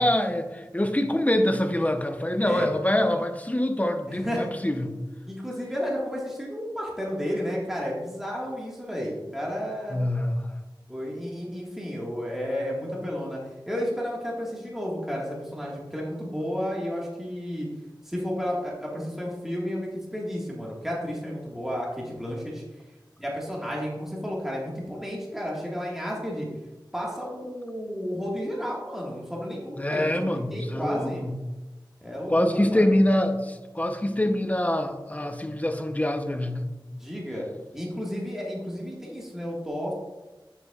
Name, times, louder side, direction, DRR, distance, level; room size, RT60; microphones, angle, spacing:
voice 1, 0.0-4.9 9.9-10.4 29.8-31.3 32.3-36.7, left 1 dB, 20° left, 6 dB, 0.7 m, -25 dB
voice 2, 4.1-4.4 5.3-10.0 10.9-13.4 13.7-17.7 18.0-22.6 23.2-26.5 26.9-31.2 32.0-32.9 37.0-37.5 37.7-39.9, equal, 5° right, -4 dB, 1.6 m, -32 dB
9.0 x 6.8 x 2.4 m, 1.1 s
wide cardioid pair, 55°, 8 cm